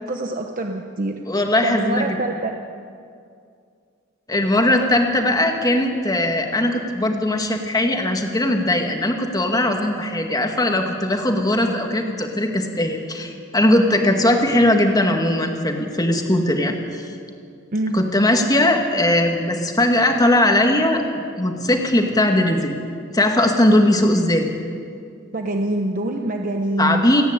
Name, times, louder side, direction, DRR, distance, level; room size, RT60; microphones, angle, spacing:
voice 1, 0.0-1.2 1.6-2.6 17.7-18.0 25.3-27.0, right 1 dB, 45° right, 3 dB, 1.1 m, -25 dB
voice 2, 1.3-2.2 4.3-17.1 17.9-22.8 23.1-24.5 26.8-27.2, left 1 dB, 20° left, 3 dB, 2.0 m, -19 dB
29.0 x 10.0 x 9.7 m, 2.3 s
head